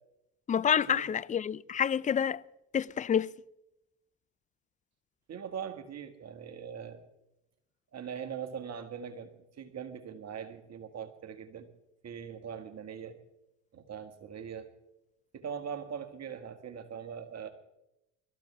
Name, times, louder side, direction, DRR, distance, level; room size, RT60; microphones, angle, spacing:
voice 1, 0.5-2.4 2.7-3.3, left 8 dB, 20° left, 0.5 m, -28 dB
voice 2, 5.3-7.0 7.9-11.7 12.0-13.2 13.7-14.7 15.3-17.5, right 7 dB, 40° right, 1.9 m, -41 dB
23.5 x 14.0 x 3.5 m
hypercardioid pair, 70°, 39 cm